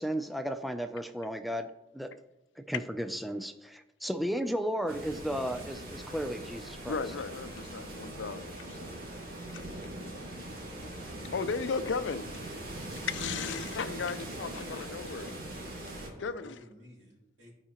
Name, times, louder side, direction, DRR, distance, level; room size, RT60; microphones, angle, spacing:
voice 1, 0.0-1.7 1.9-2.1 2.6-7.0, equal, ahead, 7 dB, 0.3 m, -34 dB
sound 1, 4.9-16.1, right 1 dB, 55° right, 2.0 m, -41 dB
voice 2, 6.9-8.9 10.0-10.1 11.3-12.3 13.0-15.3 16.2-16.6, left 5 dB, 90° left, 13 dB, 0.5 m, -35 dB
voice 3, 16.1-17.5, equal, 75° right, -4 dB, 2.9 m, -54 dB
13.5 x 4.9 x 2.9 m, 0.91 s
head